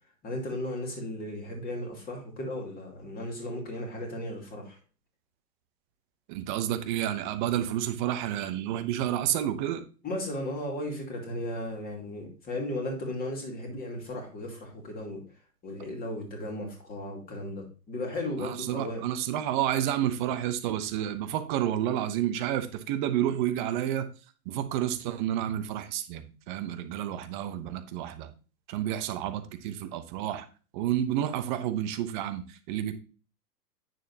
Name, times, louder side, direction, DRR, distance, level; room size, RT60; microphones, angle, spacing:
voice 1, 0.2-4.8 10.0-15.2 15.6-19.0, left 1 dB, 20° left, 1 dB, 2.3 m, -35 dB
voice 2, 6.3-9.8 18.4-24.1 24.4-28.3 28.7-30.5 30.7-32.9, right 11 dB, 30° right, 9 dB, 0.9 m, -30 dB
9.1 x 6.7 x 2.8 m, 0.35 s
hypercardioid pair, 140°, 49 cm